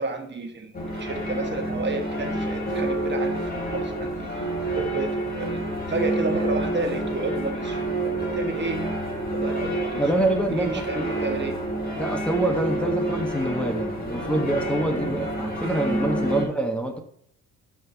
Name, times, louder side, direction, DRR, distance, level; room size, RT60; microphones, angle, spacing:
voice 1, 0.0-4.3 4.8-8.8 9.3-10.2 10.6-11.6 16.3-16.5, right 3 dB, 35° right, 4 dB, 1.7 m, -31 dB
sound 1, 0.7-16.5, right 1 dB, 30° left, 3.4 m, -28 dB
voice 2, 10.0-11.1 12.0-17.0, right 1 dB, 5° left, 1 dB, 1.3 m, -26 dB
12.0 x 6.2 x 2.9 m, 0.69 s
cardioid pair, 90°, 30 cm